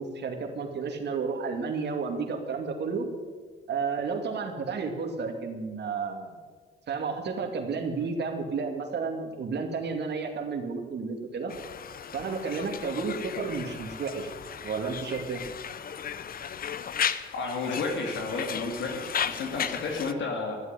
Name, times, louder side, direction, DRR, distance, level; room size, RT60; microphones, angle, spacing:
voice 1, 0.0-3.1 3.7-6.4 6.9-11.5 12.1-14.3 14.6-15.4, right 5 dB, 60° right, 4 dB, 2.4 m, -32 dB
Conversation, 11.5-20.1, left 8 dB, 45° left, 0.8 m, -35 dB
voice 2, 17.3-20.6, left 3 dB, 70° left, 2 dB, 2.6 m, -32 dB
13.5 x 8.1 x 9.7 m, 1.5 s
cardioid pair, 90°, 20 cm